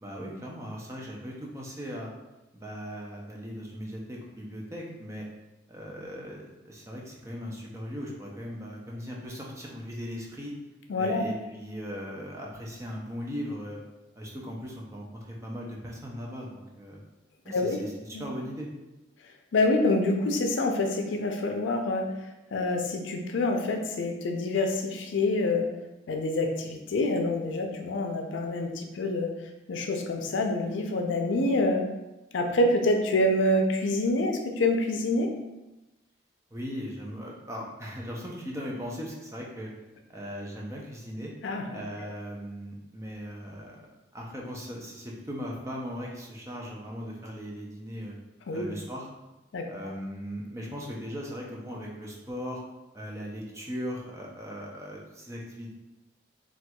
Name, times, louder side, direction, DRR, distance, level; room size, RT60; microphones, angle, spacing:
voice 1, 0.0-2.1 2.5-5.3 5.7-10.5 11.0-13.8 14.2-17.0 17.4-18.7 36.5-39.7 40.1-41.3 41.7-48.1 48.5-49.1 49.7-52.6 52.9-55.7, equal, 15° right, -2 dB, 0.4 m, -38 dB
voice 2, 10.9-11.2 17.5-17.8 18.1-18.2 19.5-22.1 22.5-25.7 26.1-29.3 29.7-31.8 32.3-35.3 41.4-41.8 48.5-48.6 49.5-49.7, left 2 dB, 85° left, 4 dB, 0.5 m, -26 dB
4.3 x 2.3 x 2.3 m, 1.0 s
head